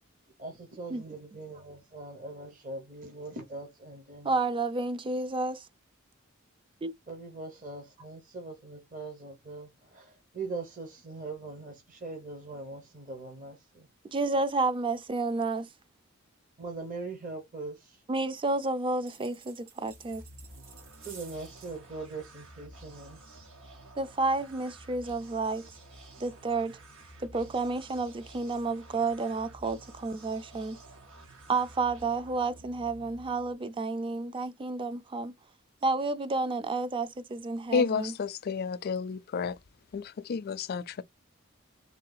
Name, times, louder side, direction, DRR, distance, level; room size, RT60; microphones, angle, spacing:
voice 1, 0.4-4.5 7.1-13.9 16.6-18.0 21.0-23.2, right 3 dB, 40° right, 0.9 m, -41 dB
voice 2, 4.2-5.7 6.8-6.9 14.0-15.7 18.1-20.2 24.0-25.7 26.2-26.8 27.2-30.8 31.5-35.3 35.8-38.1, right 3 dB, 25° right, 0.4 m, -30 dB
sound 1, 19.0-21.8, right 6 dB, 65° right, 2.1 m, -53 dB
sound 2, 19.8-33.5, right 1 dB, 85° right, 1.7 m, -51 dB
voice 3, 37.7-39.6 39.9-41.0, left 5 dB, 50° left, 0.4 m, -31 dB
3.8 x 2.3 x 3.9 m
head